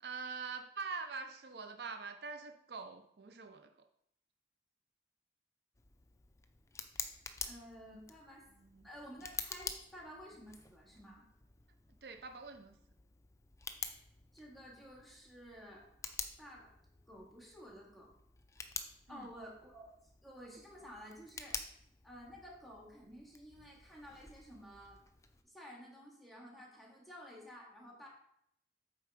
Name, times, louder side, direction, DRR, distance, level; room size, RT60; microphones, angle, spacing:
voice 1, 0.0-3.9 8.5-8.9 12.0-12.8 19.1-19.3, right 5 dB, 65° right, 7 dB, 0.6 m, -44 dB
Tick, 5.7-25.4, left 5 dB, 15° left, 0.6 m, -49 dB
voice 2, 7.4-8.5 8.8-11.2 14.3-15.9 16.4-16.7 17.1-18.1 19.1-19.9 20.2-21.6 22.0-25.0 25.4-28.1, equal, ahead, -3 dB, 2.1 m, -52 dB
8.1 x 4.7 x 4.9 m, 0.73 s
head